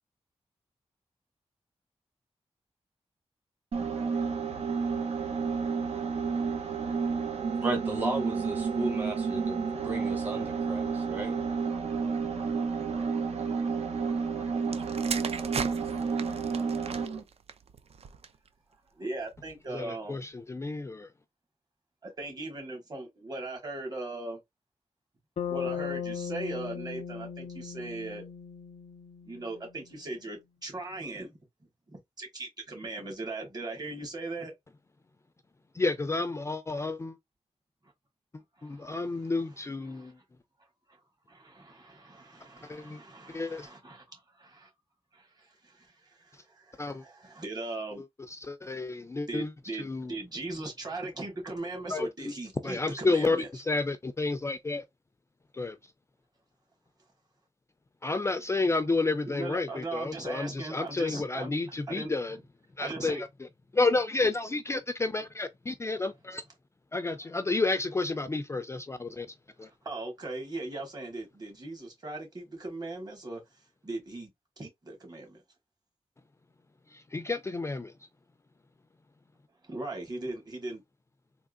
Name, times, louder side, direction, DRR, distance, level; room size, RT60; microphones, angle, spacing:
sound 1, 3.7-17.2, right 5 dB, 80° right, 1.1 m, -31 dB
voice 1, 7.6-11.4, right 1 dB, 15° right, 0.8 m, -35 dB
sound 2, 14.6-18.5 19.3-19.5, right 6 dB, 65° right, 0.5 m, -38 dB
voice 2, 18.9-20.2 22.0-24.4 25.5-28.3 29.2-31.4 31.9-34.6 38.6-40.1 41.3-44.7 45.1-48.0 49.3-53.5 59.3-62.4 62.8-63.2 69.6-73.4 73.8-74.3 74.6-75.4 79.6-80.8, right 2 dB, 35° right, 1.7 m, -39 dB
voice 3, 19.7-21.1 35.8-37.2 38.6-40.1 42.7-43.0 43.3-43.7 46.8-47.0 48.4-49.5 49.8-50.1 51.9-52.3 52.6-53.4 53.7-54.8 55.6-55.8 58.0-62.4 62.8-63.3 63.7-66.4 66.9-69.3 69.6-69.7 77.1-77.9, left 3 dB, 25° left, 0.3 m, -30 dB
Bass guitar, 25.4-29.7, left 7 dB, 85° left, 0.5 m, -37 dB
3.6 x 2.9 x 2.4 m
wide cardioid pair, 120°, 11 cm